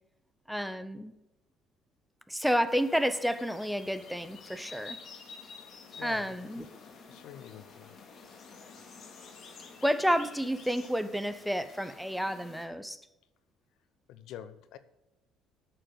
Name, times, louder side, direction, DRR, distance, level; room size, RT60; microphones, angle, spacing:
voice 1, 0.5-1.1 2.3-5.0 6.0-6.6 9.8-13.0, equal, ahead, 0.8 m, -30 dB
sound 1, 2.7-12.7, left 5 dB, 55° left, 2.6 m, -50 dB
voice 2, 5.9-6.4 7.1-7.9 14.1-14.8, left 10 dB, 70° left, 0.7 m, -46 dB
8.8 x 6.6 x 7.9 m
hypercardioid pair, 65°, 0 cm